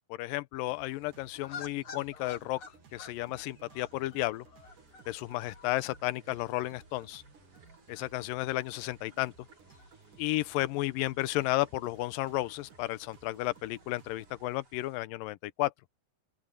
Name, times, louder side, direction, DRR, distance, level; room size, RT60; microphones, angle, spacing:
voice 1, 0.1-2.6 2.9-4.5 5.1-7.2 7.9-9.3 10.2-15.7, left 18 dB, 80° left, 2.3 m, -33 dB
sound 1, 0.7-14.4, right 5 dB, 60° right, 4.1 m, -58 dB
sound 2, 1.3-12.8, left 6 dB, 45° left, 2.1 m, -53 dB
sound 3, 4.6-15.0, right 3 dB, 40° right, 6.7 m, -64 dB
open air
omnidirectional pair, 4.2 m